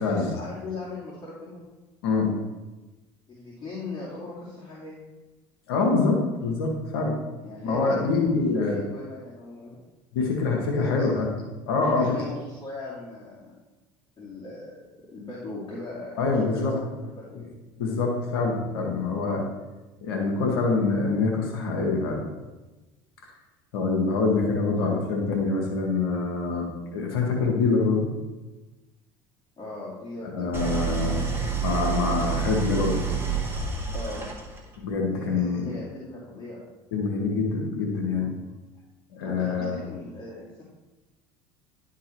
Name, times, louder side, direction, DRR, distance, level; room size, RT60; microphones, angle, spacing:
voice 1, 0.0-1.7 3.3-5.0 7.4-8.1 8.5-9.8 10.7-11.0 11.8-13.5 14.2-14.8 15.1-16.1 16.5-17.5 29.6-31.2 33.9-34.2 35.1-36.6 39.2-40.6, left 2 dB, 35° left, -7 dB, 2.6 m, -39 dB
voice 2, 2.0-2.3 5.7-7.2 7.6-8.7 10.1-11.3 11.7-12.1 16.2-16.7 17.3-17.4 17.8-19.4 20.0-22.2 23.7-28.1 30.3-31.1 31.6-33.0 34.8-35.7 36.9-38.3 39.1-39.8, left 4 dB, 85° left, 0 dB, 1.3 m, -25 dB
Idling, 30.5-34.8, right 5 dB, 20° right, 1.7 m, -28 dB
11.0 x 3.8 x 4.5 m, 1.1 s
hypercardioid pair, 80°, 12 cm